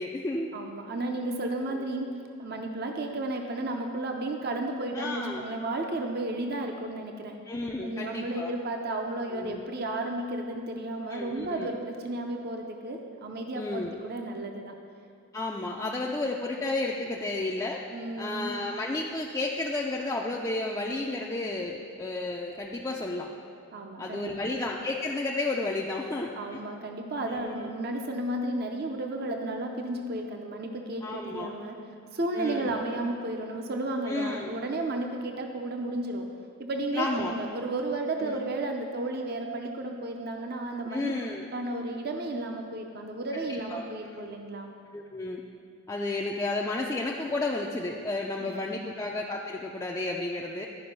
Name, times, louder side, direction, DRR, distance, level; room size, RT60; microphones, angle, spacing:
voice 1, 0.0-0.5 1.7-1.9 4.9-5.4 7.5-8.5 9.3-9.6 11.1-11.7 13.6-14.0 15.3-17.8 18.2-23.3 24.0-26.6 27.3-27.7 31.0-31.5 32.3-32.7 34.1-34.5 36.9-37.3 38.2-38.4 40.9-41.5 43.7-43.8 44.1-44.3 44.9-45.4 45.9-50.7, left 2 dB, 15° left, -2 dB, 0.3 m, -32 dB
voice 2, 0.5-7.4 7.8-14.7 17.9-18.5 23.7-24.3 26.3-31.8 32.1-36.3 36.6-44.7 48.4-48.9, right 2 dB, 45° right, 3 dB, 0.5 m, -33 dB
11.0 x 5.1 x 5.3 m, 2.3 s
head